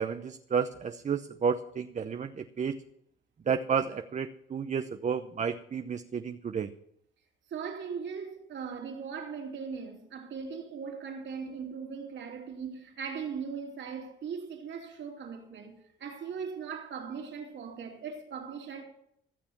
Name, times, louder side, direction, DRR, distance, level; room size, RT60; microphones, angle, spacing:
voice 1, 0.0-2.8 3.5-6.7, right 6 dB, 35° right, 0.7 m, -31 dB
voice 2, 7.5-18.8, right 6 dB, 65° right, 2.9 m, -39 dB
15.0 x 6.8 x 7.2 m
cardioid pair, 90°, 20 cm